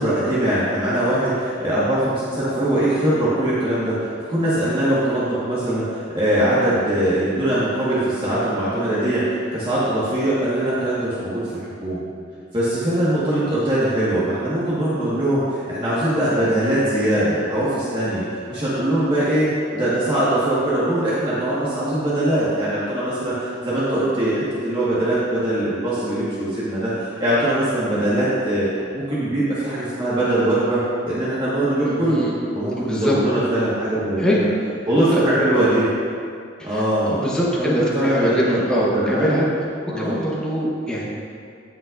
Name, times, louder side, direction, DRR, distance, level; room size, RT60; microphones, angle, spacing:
voice 1, 0.0-12.0 12.5-19.5 19.7-28.7 28.9-32.2 32.5-34.4 34.9-35.9 36.6-37.2 37.6-39.4 39.9-40.1, right 1 dB, 25° right, -10 dB, 1.6 m, -21 dB
voice 2, 31.9-32.4 32.7-33.2 34.2-34.5 35.1-35.3 36.6-39.4 40.0-41.0, equal, 5° left, -6 dB, 1.1 m, -23 dB
16.5 x 5.5 x 2.6 m, 2.3 s
head